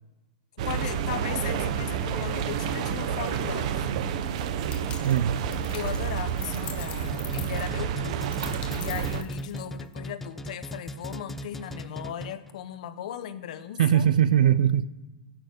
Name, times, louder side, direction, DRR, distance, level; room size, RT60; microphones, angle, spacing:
voice 1, 0.6-3.9 5.7-8.4 8.7-14.1, left 10 dB, 65° left, 0.9 m, -37 dB
sound 1, 0.6-9.2, right 8 dB, 55° right, 0.9 m, -29 dB
sound 2, 4.7-9.9, left 9 dB, 25° left, 0.8 m, -44 dB
voice 2, 5.0-5.4 13.8-14.9, right 10 dB, 75° right, 0.6 m, -20 dB
sound 3, 7.0-12.6, equal, 5° left, 0.4 m, -38 dB
16.0 x 6.1 x 6.7 m
supercardioid pair, 150°, 4 cm